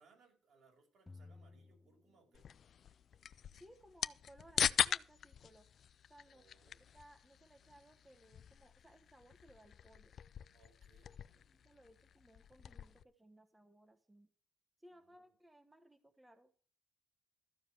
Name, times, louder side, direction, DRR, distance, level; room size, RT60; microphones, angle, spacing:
voice 1, 0.0-2.5 6.3-6.9 10.5-11.7 14.9-15.3, right 4 dB, 70° right, 1 dB, 5.4 m, -70 dB
sound 1, 1.1-2.8, left 3 dB, 15° left, 0.7 m, -57 dB
sound 2, 2.3-13.0, left 8 dB, 60° left, 0.5 m, -42 dB
voice 2, 3.6-5.7 6.0-10.1 11.2-14.3 14.8-16.6, right 1 dB, 10° right, 7 dB, 1.2 m, -63 dB
14.0 x 5.0 x 8.3 m, 0.43 s
cardioid pair, 90°, 0 cm